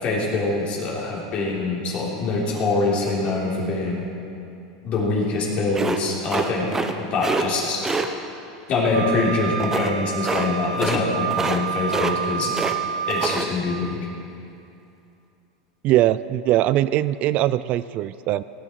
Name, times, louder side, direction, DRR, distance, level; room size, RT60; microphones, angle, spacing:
voice 1, 0.0-4.1 4.8-7.8 8.7-12.5 13.1-14.0, left 3 dB, 45° left, -3 dB, 3.5 m, -24 dB
sound 1, 5.7-6.9 7.2-7.4 7.8-8.1 9.6-9.9 10.2-10.5 10.7-11.0 11.3-11.6 11.9-12.8 13.1-13.4, right 3 dB, 15° right, 0.9 m, -25 dB
Wind instrument woodwind instrument, 8.9-13.4, right 7 dB, 85° right, 0.9 m, -28 dB
voice 2, 15.8-18.4, right 14 dB, 50° right, 16 dB, 0.3 m, -21 dB
18.0 x 10.0 x 4.6 m, 2.7 s
supercardioid pair, 120°, 3 cm